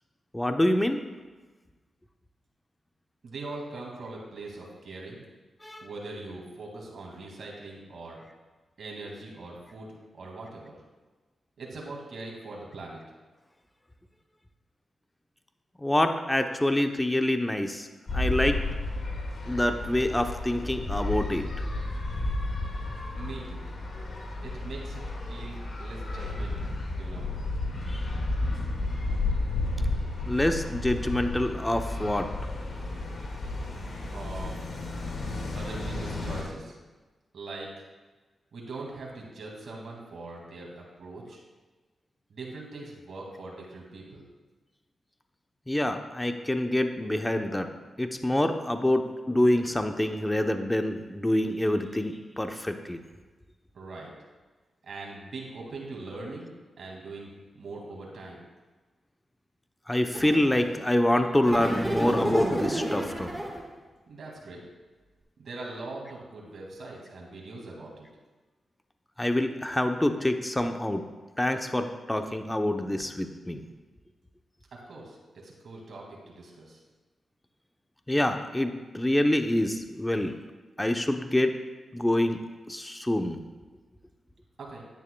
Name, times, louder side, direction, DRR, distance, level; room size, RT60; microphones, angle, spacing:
voice 1, 0.3-1.0 5.6-5.9 15.8-17.9 18.1-18.6 19.5-21.5 27.9-28.0 30.3-32.3 45.7-47.7 48.0-53.0 59.9-63.3 69.2-71.0 71.4-73.7 78.1-80.4 80.8-81.6 81.9-83.4, left 1 dB, 15° left, 6 dB, 0.8 m, -26 dB
voice 2, 3.2-5.2 5.8-8.2 8.8-10.8 11.6-13.0 23.1-23.7 24.4-25.0 25.3-27.3 34.1-34.6 35.5-36.7 37.3-37.7 38.5-41.4 42.3-44.2 53.7-54.1 54.8-57.3 57.5-58.4 64.1-64.6 65.4-68.1 74.7-76.8 84.6-84.8, right 2 dB, 70° right, -2 dB, 2.2 m, -41 dB
sound 1, 18.1-36.4, left 2 dB, 55° left, 1.9 m, -32 dB
sound 2, 60.1-60.8 61.4-63.7, right 1 dB, 15° right, 1.6 m, -30 dB
10.5 x 9.3 x 2.3 m, 1.3 s
cardioid pair, 60°, 0 cm